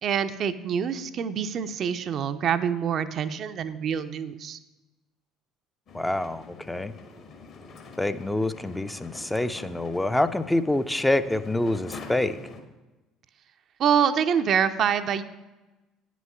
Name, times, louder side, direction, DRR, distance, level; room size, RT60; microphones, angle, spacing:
voice 1, 0.0-4.6 13.8-15.2, right 8 dB, 45° right, 9 dB, 0.5 m, -26 dB
sound 1, 5.9-12.6, left 4 dB, 50° left, 1.2 m, -45 dB
voice 2, 5.9-6.9 8.0-12.4, left 1 dB, 10° left, 10 dB, 0.4 m, -26 dB
9.2 x 6.2 x 5.4 m, 1.1 s
figure-of-eight pair, 55°, 0 cm